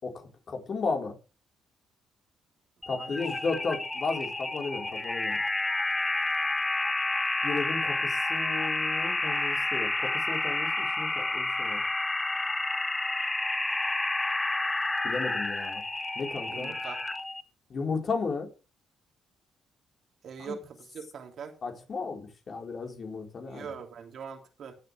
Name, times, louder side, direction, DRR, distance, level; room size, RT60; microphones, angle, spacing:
voice 1, 0.0-1.2 2.9-5.4 7.4-11.8 15.0-15.8 16.2-16.7 17.7-18.5 20.4-20.5 21.6-23.7, left 4 dB, 45° left, 4.2 m, -34 dB
sound 1, 2.8-17.4, left 2 dB, 15° left, 1.0 m, -30 dB
voice 2, 16.5-17.0 20.2-21.5 23.5-24.7, right 6 dB, 60° right, 3.0 m, -42 dB
16.5 x 7.9 x 3.4 m
cardioid pair, 90°, 0 cm